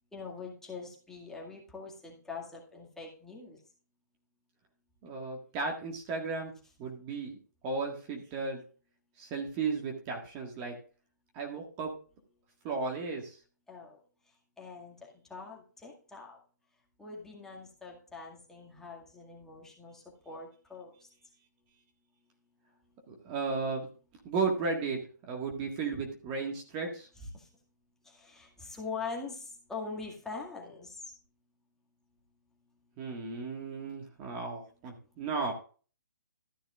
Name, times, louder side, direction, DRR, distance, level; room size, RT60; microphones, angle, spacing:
voice 1, 0.1-3.6 13.7-14.0 14.6-16.4 17.0-20.9 27.3-27.5 28.0-31.0, left 4 dB, 5° left, -3 dB, 2.1 m, -43 dB
voice 2, 5.0-6.5 6.8-7.4 7.6-8.6 9.2-10.7 11.3-11.9 12.6-13.4 23.1-23.9 24.2-25.0 25.3-27.1 33.0-35.5, right 4 dB, 25° right, 2 dB, 1.8 m, -34 dB
13.0 x 11.0 x 2.5 m, 0.39 s
hypercardioid pair, 145°, 10 cm